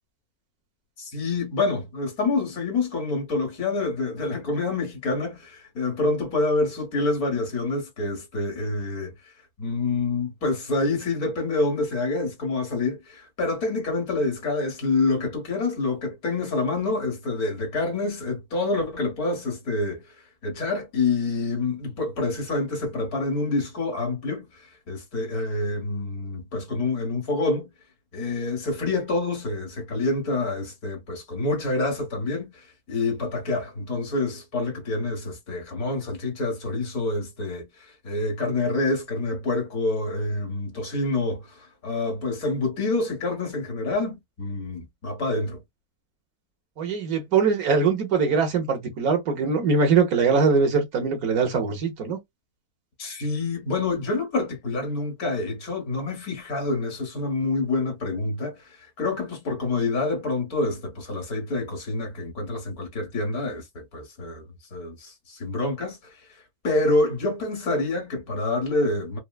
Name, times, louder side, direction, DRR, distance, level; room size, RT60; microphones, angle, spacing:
voice 1, 1.0-9.1 9.6-20.0 20.4-27.7 28.1-45.6 53.0-66.2 66.6-69.2, left 3 dB, 75° left, 1.9 m, -27 dB
voice 2, 46.8-52.2, right 5 dB, 75° right, 1.5 m, -22 dB
4.6 x 2.1 x 2.3 m
omnidirectional pair, 1.6 m